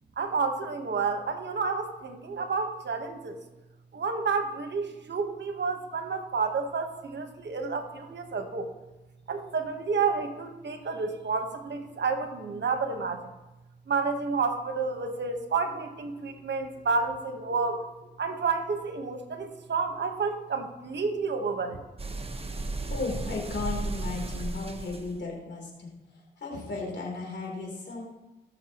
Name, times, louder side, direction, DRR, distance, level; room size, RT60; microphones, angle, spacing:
voice 1, 0.2-3.4 3.9-8.7 9.3-13.3 13.9-17.9 18.2-21.8, right 4 dB, 70° right, 6 dB, 1.3 m, -30 dB
sound 1, 22.0-25.2, right 2 dB, 30° right, 1.2 m, -34 dB
voice 2, 22.5-28.0, left 3 dB, 70° left, -2 dB, 3.5 m, -36 dB
18.5 x 6.7 x 3.0 m, 1.1 s
cardioid pair, 55°, 19 cm